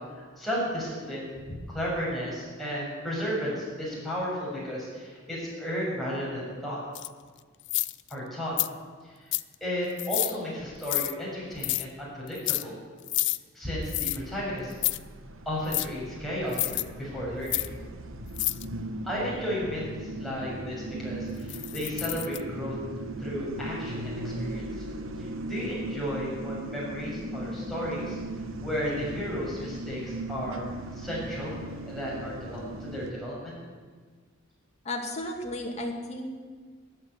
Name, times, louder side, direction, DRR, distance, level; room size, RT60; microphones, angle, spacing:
voice 1, 0.1-6.8 8.1-8.5 9.0-9.3 9.6-12.8 13.5-14.7 15.5-16.7 17.0-17.7 19.0-22.8 23.2-24.8 25.2-28.2 28.6-30.6 30.9-33.6, equal, ahead, -6 dB, 6.8 m, -33 dB
sound 1, 7.0-7.1 7.7-8.1 8.6-8.7 9.3-9.5 10.0-10.4 10.8-11.1 11.6-11.9 12.3-12.6 13.1-13.4 13.9-14.2 14.7-15.0 15.7-15.9 16.5-16.8 17.5-17.7 18.3-18.6 21.5-22.4, left 19 dB, 60° left, 0.5 m, -29 dB
sound 2, 14.2-33.1, right 1 dB, 75° right, 1.1 m, -38 dB
voice 2, 34.9-36.4, left 1 dB, 35° left, 1 dB, 2.3 m, -34 dB
14.0 x 10.5 x 9.7 m, 1.5 s
head